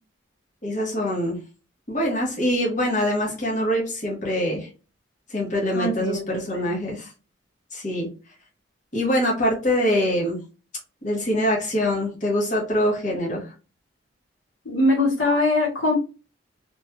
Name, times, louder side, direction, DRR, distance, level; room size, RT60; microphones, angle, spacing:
voice 1, 0.6-1.4 1.9-4.7 5.3-7.1 7.7-8.1 8.9-10.4 11.0-13.5, equal, 40° left, -3 dB, 1.1 m, -24 dB
voice 2, 5.7-6.7 14.6-15.9, left 2 dB, 85° left, 0 dB, 1.0 m, -22 dB
2.9 x 2.9 x 2.3 m, 0.33 s
head